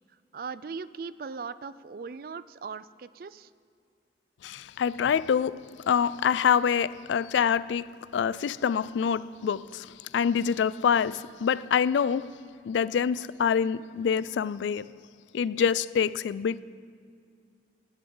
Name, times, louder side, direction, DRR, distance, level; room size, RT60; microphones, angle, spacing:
voice 1, 0.3-3.5, right 5 dB, 55° right, 0.4 m, -39 dB
voice 2, 4.4-5.6 5.9-7.9 8.1-12.3 12.7-14.9 15.3-16.6, left 7 dB, 90° left, 0.3 m, -26 dB
18.0 x 10.5 x 3.9 m
head